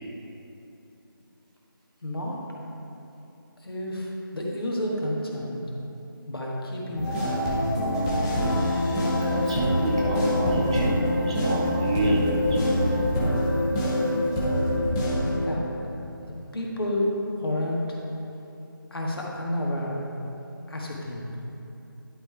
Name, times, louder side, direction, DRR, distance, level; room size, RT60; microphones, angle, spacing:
voice 1, 2.0-2.4 3.6-5.6 6.2-7.4 15.4-15.6 16.5-17.1 17.4-18.0 18.9-20.0 20.7-21.2, left 1 dB, 80° left, -3 dB, 1.8 m, -30 dB
sound 1, 7.0-15.4, left 1 dB, 10° left, 0.9 m, -25 dB
voice 2, 9.2-10.9 11.2-12.6, right 1 dB, 15° right, -3 dB, 0.5 m, -28 dB
11.0 x 3.8 x 4.7 m, 2.9 s
figure-of-eight pair, 160°, 12 cm